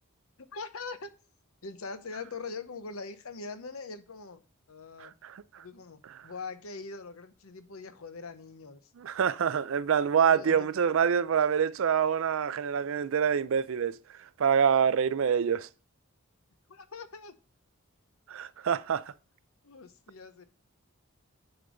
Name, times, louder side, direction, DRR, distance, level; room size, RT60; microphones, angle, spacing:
voice 1, 0.4-1.1 1.6-4.4 4.7-5.1 5.6-8.8 10.2-10.7 16.7-17.4 19.6-20.4, left 4 dB, 70° left, 0.9 m, -42 dB
voice 2, 5.0-5.6 6.2-6.3 9.0-15.7 18.3-19.1, right 7 dB, 60° right, 0.4 m, -26 dB
9.8 x 5.2 x 3.9 m
head